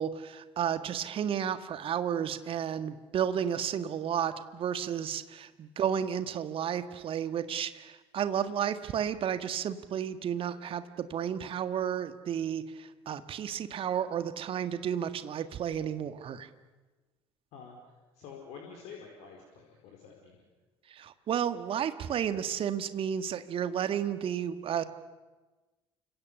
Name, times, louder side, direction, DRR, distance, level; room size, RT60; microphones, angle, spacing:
voice 1, 0.0-16.5 20.9-24.8, right 9 dB, 40° right, 10 dB, 1.8 m, -32 dB
voice 2, 18.1-20.4, left 6 dB, 55° left, 0 dB, 4.8 m, -48 dB
29.5 x 26.0 x 7.0 m, 1.2 s
figure-of-eight pair, 60°, 14 cm